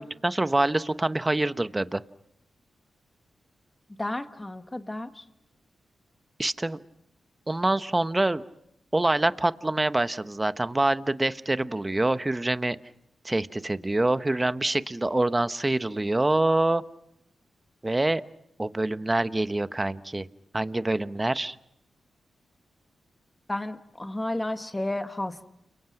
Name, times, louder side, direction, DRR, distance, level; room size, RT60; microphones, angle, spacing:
voice 1, 0.0-2.0 6.4-6.8 7.5-8.4 8.9-12.8 13.2-16.8 17.8-18.2 18.6-20.3 20.5-21.6, right 2 dB, 20° right, 13 dB, 1.0 m, -25 dB
voice 2, 4.0-5.2 23.5-25.5, left 1 dB, 20° left, 8 dB, 1.6 m, -32 dB
29.5 x 23.0 x 6.0 m, 0.81 s
cardioid pair, 55°, 0 cm